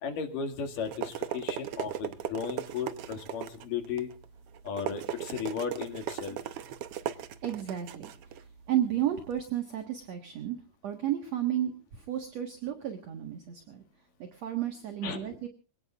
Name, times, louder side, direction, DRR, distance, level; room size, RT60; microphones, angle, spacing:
voice 1, 0.0-4.1 4.6-6.4 15.0-15.2, left 6 dB, 70° left, 5 dB, 3.8 m, -35 dB
sound 1, 0.5-9.4, right 10 dB, 90° right, 1.3 m, -38 dB
voice 2, 7.0-10.6 10.8-13.8 14.2-15.5, right 11 dB, 55° right, 5 dB, 2.5 m, -33 dB
26.5 x 18.0 x 2.5 m, 0.35 s
omnidirectional pair, 4.0 m